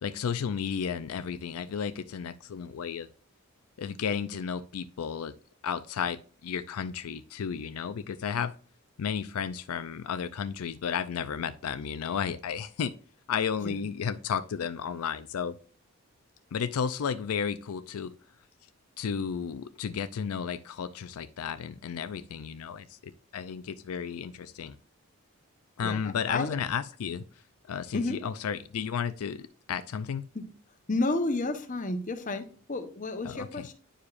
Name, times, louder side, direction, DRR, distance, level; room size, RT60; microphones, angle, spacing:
voice 1, 0.0-3.1 3.8-5.3 5.6-8.5 9.0-12.9 13.3-15.6 16.5-18.1 19.0-24.7 25.8-27.2 27.7-30.2 33.2-33.7, left 7 dB, 80° left, 12 dB, 0.4 m, -33 dB
voice 2, 25.8-26.5 27.9-28.2 30.3-30.4 30.9-33.7, left 2 dB, 35° left, 7 dB, 0.8 m, -31 dB
9.9 x 4.8 x 2.5 m, 0.41 s
head